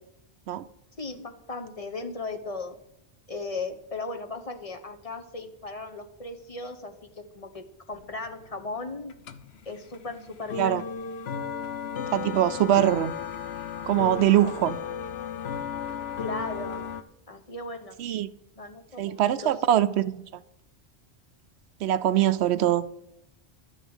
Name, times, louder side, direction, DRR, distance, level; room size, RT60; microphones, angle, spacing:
voice 1, 1.0-2.7 3.3-9.1 9.6-10.8 16.2-16.9 17.3-18.0 18.6-19.6, left 3 dB, 35° left, 1.0 m, -37 dB
sound 1, 7.9-17.0, left 6 dB, 70° left, 1.0 m, -35 dB
voice 2, 12.1-13.1 13.9-14.8 18.0-18.3 19.0-20.1 21.8-22.8, right 12 dB, 85° right, 0.9 m, -22 dB
12.0 x 6.3 x 8.1 m
omnidirectional pair, 1.1 m